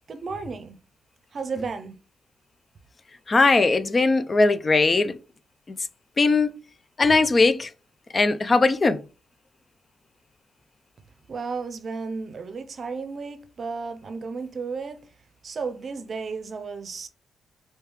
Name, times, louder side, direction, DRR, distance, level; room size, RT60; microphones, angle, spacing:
voice 1, 0.1-0.7 1.3-2.0 11.3-15.0 15.4-17.1, right 4 dB, 50° right, 0.6 m, -33 dB
voice 2, 3.3-5.1 6.2-6.5 7.0-7.7 8.1-9.0, left 3 dB, 35° left, 0.4 m, -19 dB
3.1 x 2.8 x 3.4 m
cardioid pair, 70°, 0 cm